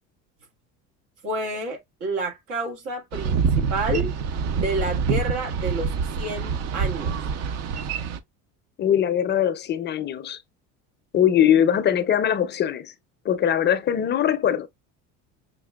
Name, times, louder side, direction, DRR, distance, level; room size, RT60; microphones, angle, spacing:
voice 1, 1.2-4.1 4.5-5.9 6.2-7.1, right 2 dB, 90° right, 1.7 m, -29 dB
Boat Water vehicle, 3.1-8.2, right 6 dB, 50° right, 0.5 m, -26 dB
voice 2, 8.8-10.4 11.1-12.9 13.2-14.7, left 9 dB, 35° left, 0.4 m, -21 dB
5.7 x 2.3 x 2.2 m
cardioid pair, 125°, 33 cm